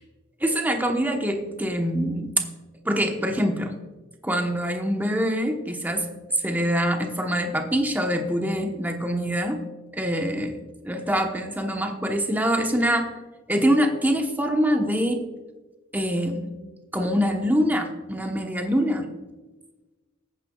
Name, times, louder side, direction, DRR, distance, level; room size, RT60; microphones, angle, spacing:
voice 1, 0.4-2.3 2.8-3.8 4.2-6.1 6.4-9.6 9.9-10.6 10.8-13.1 13.5-15.2 15.9-16.6 16.9-19.1, equal, 10° right, 4 dB, 1.0 m, -24 dB
19.0 x 9.3 x 2.3 m, 1.2 s
head